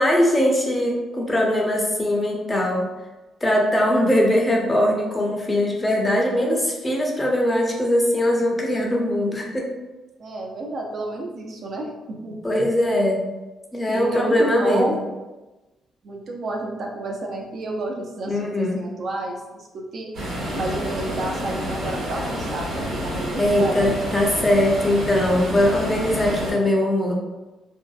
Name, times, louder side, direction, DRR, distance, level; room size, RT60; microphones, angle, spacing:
voice 1, 0.0-2.9 3.4-9.7 12.4-13.2 13.7-15.0 18.3-18.8 23.4-27.1, left 1 dB, 20° left, 0 dB, 0.5 m, -21 dB
voice 2, 10.2-12.4 13.9-15.0 16.0-20.1 20.5-23.9, right 2 dB, 55° right, 0 dB, 0.4 m, -30 dB
sound 1, 20.1-26.5, equal, 85° right, 1.2 m, -29 dB
2.6 x 2.1 x 2.3 m, 1.1 s
cardioid pair, 90°, 0 cm